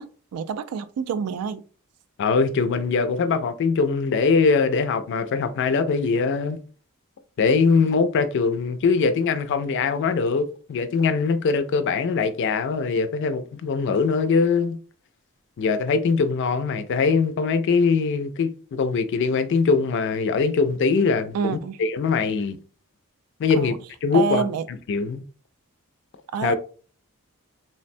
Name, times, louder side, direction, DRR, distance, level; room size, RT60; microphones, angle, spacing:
voice 1, 0.0-1.6 21.3-21.8 23.5-23.8 24.1-24.6 26.3-26.6, right 7 dB, 90° right, 0.3 m, -27 dB
voice 2, 2.2-6.6 7.4-14.8 15.6-22.6 23.4-23.7 24.0-25.2 26.4-26.6, left 4 dB, 55° left, 0.3 m, -22 dB
3.3 x 2.1 x 2.5 m
head